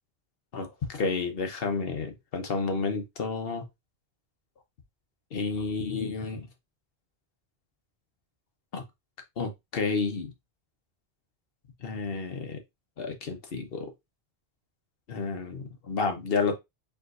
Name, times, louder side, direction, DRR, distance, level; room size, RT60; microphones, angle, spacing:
voice 1, 0.5-3.6 5.3-6.5 8.7-8.8 9.4-10.3 11.8-12.6 13.0-13.9 15.1-16.6, left 4 dB, 65° left, 1.1 m, -30 dB
4.7 x 3.8 x 2.5 m
omnidirectional pair, 1.0 m